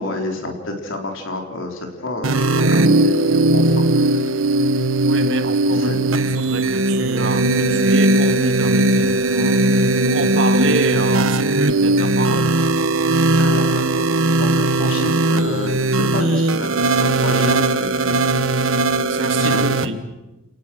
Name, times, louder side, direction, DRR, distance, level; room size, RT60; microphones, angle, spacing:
voice 1, 0.0-4.3 5.7-6.0 13.4-18.2 19.4-19.9, left 2 dB, 70° left, 2 dB, 4.1 m, -29 dB
sound 1, 2.2-19.9, right 2 dB, 85° right, 1.2 m, -18 dB
voice 2, 5.0-12.7 19.1-20.0, right 2 dB, 65° right, 7 dB, 2.1 m, -27 dB
30.0 x 19.0 x 6.4 m, 1.1 s
head